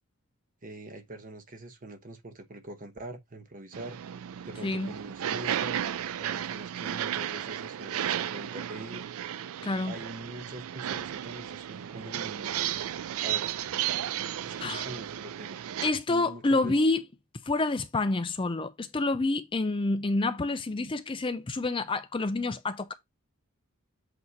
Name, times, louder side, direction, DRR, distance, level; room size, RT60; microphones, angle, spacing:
voice 1, 0.6-4.0 4.4-5.8 6.2-9.1 9.8-12.6 13.2-13.5 14.2-15.6 16.1-16.7, right 1 dB, 40° right, 1.0 m, -43 dB
sound 1, 3.7-15.9, right 10 dB, 70° right, 0.4 m, -34 dB
voice 2, 4.6-4.9 9.6-10.0 14.6-14.9 15.8-17.0 17.4-22.9, left 2 dB, 25° left, 0.4 m, -28 dB
8.1 x 2.8 x 4.5 m
head